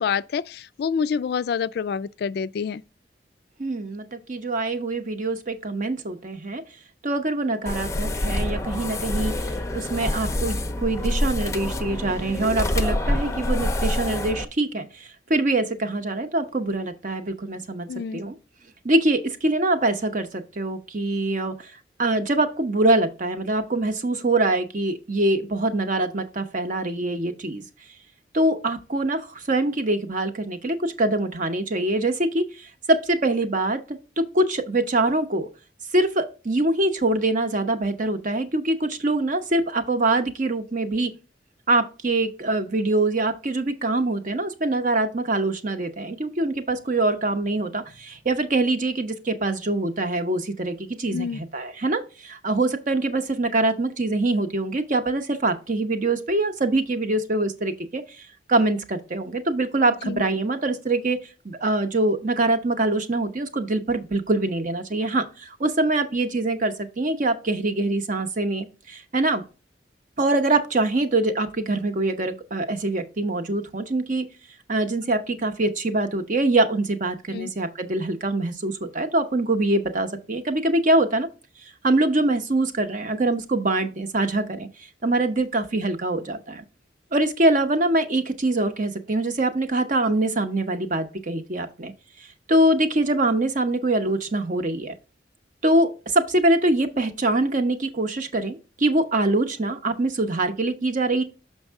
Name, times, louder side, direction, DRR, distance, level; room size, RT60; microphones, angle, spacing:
voice 1, 0.0-2.8 17.9-18.2 51.1-51.4 60.0-60.2 77.3-77.5, left 6 dB, 60° left, 0.3 m, -27 dB
voice 2, 3.6-6.6 7.0-17.9 18.1-18.3 18.8-21.7 22.0-27.7 28.3-35.5 35.9-41.1 41.7-61.2 61.4-69.4 70.2-74.2 74.7-81.3 81.8-84.7 85.0-86.6 87.1-91.9 92.5-94.9 95.6-101.2, right 2 dB, 45° right, 0.8 m, -24 dB
sound 1, 7.7-14.5, left 1 dB, 15° left, 0.6 m, -26 dB
6.4 x 5.4 x 3.5 m
head